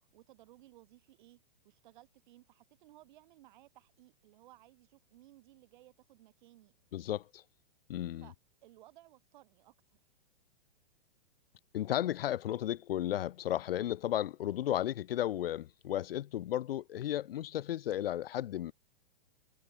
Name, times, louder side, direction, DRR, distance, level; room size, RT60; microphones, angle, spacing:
voice 1, 0.1-6.8 8.2-8.3 8.6-10.0, right 16 dB, 55° right, 6.6 m, -60 dB
voice 2, 6.9-7.4 7.9-8.3 11.7-18.7, left 12 dB, 75° left, 0.4 m, -34 dB
hypercardioid pair, 115°, 29 cm